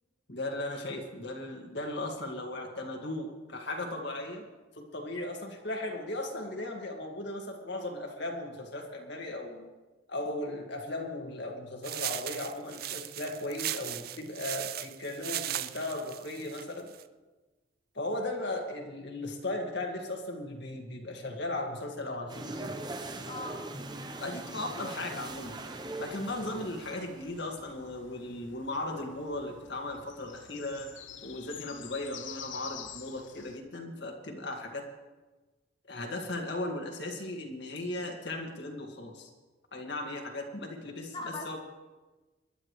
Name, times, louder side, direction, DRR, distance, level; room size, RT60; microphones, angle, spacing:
voice 1, 0.3-4.4 4.8-9.7 10.1-16.9 17.9-22.7 24.2-25.6 26.0-34.8 35.9-39.3 39.7-41.6, left 2 dB, 60° left, 1 dB, 2.0 m, -37 dB
sound 1, 11.8-17.0, right 13 dB, 50° right, 0.4 m, -37 dB
sound 2, 22.3-27.4, right 2 dB, 20° right, 0.8 m, -41 dB
voice 2, 23.3-23.6 41.1-41.6, left 2 dB, 25° left, -1 dB, 1.4 m, -39 dB
sound 3, 25.3-33.6, left 9 dB, 80° left, 0.8 m, -49 dB
25.5 x 11.5 x 3.2 m, 1.2 s
head